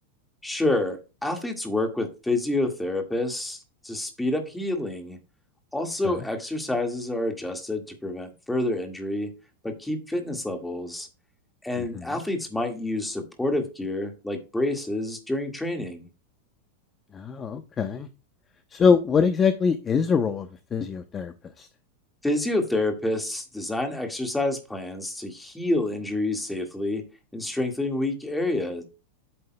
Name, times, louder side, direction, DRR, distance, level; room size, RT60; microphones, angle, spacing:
voice 1, 0.4-3.6 3.8-5.2 5.7-9.3 9.6-11.1 11.6-16.1 22.2-27.0 27.3-28.8, left 2 dB, 5° left, 1.8 m, -28 dB
voice 2, 17.1-18.1 18.7-21.7, left 6 dB, 20° left, 0.7 m, -23 dB
10.0 x 8.8 x 2.2 m
supercardioid pair, 145°, 0 cm